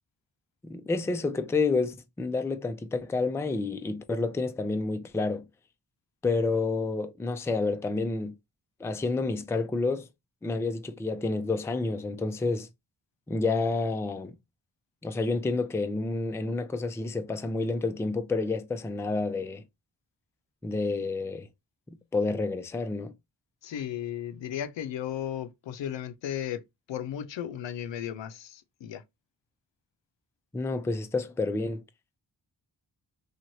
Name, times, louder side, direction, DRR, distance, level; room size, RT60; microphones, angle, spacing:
voice 1, 0.6-5.5 6.2-8.3 8.8-10.1 10.4-12.7 13.3-14.3 15.0-19.6 20.6-21.5 22.1-23.1 30.5-31.8, left 3 dB, 5° left, 0.3 m, -29 dB
voice 2, 23.6-26.6 26.9-29.0, left 10 dB, 80° left, 0.6 m, -35 dB
3.0 x 2.5 x 2.6 m
cardioid pair, 55°, 44 cm